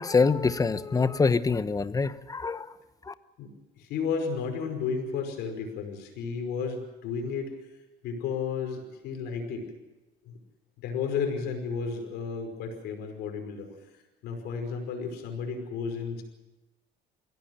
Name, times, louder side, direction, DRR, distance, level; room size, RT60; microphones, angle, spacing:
voice 1, 0.0-2.7 3.1-3.2, left 4 dB, 20° left, 13 dB, 1.0 m, -25 dB
voice 2, 3.8-7.5 8.0-9.6 10.3-10.4 10.8-13.7 14.2-16.2, left 5 dB, 85° left, 4 dB, 5.3 m, -32 dB
22.0 x 16.5 x 9.0 m, 1.1 s
cardioid pair, 110°, 17 cm